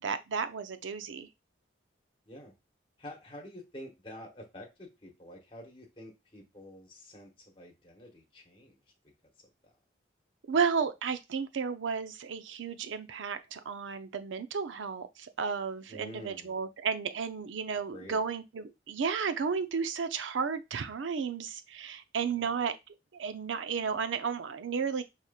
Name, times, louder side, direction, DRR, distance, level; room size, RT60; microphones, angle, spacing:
voice 1, 0.0-1.3 10.5-22.8 23.1-25.0, right 6 dB, 80° right, 0.5 m, -33 dB
voice 2, 3.0-8.8 9.2-9.8 15.9-16.6 17.9-18.2 22.4-22.6, equal, 25° left, 1.0 m, -48 dB
4.9 x 2.9 x 2.3 m
head